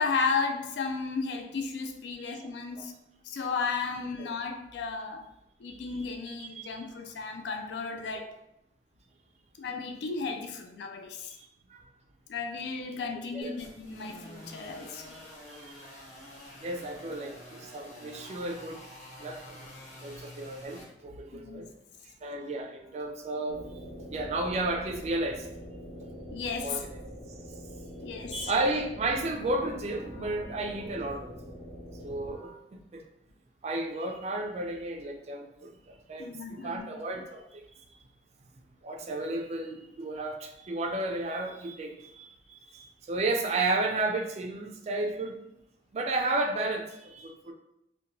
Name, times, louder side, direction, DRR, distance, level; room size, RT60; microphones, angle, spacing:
voice 1, 0.0-2.9 3.2-5.3 5.6-8.3 9.6-11.3 12.3-15.1 21.4-21.6 26.3-26.8 28.0-28.5 36.2-36.9, left 4 dB, 70° left, 4 dB, 0.3 m, -34 dB
voice 2, 6.3-6.7 11.7-11.8 13.3-13.6 16.6-17.3 17.7-18.8 19.2-19.4 20.0-21.7 22.2-23.6 24.1-25.4 26.6-26.9 28.3-31.3 32.0-32.6 33.6-35.7 36.1-37.4 38.8-42.2 42.5-42.7 43.1-45.4 45.9-47.5, right 2 dB, 35° right, 3 dB, 0.3 m, -32 dB
sound 1, 13.4-20.8, equal, 45° left, 0.9 m, -48 dB
sound 2, 23.5-32.3, equal, 15° left, 0.6 m, -44 dB
2.8 x 2.2 x 2.6 m, 0.80 s
head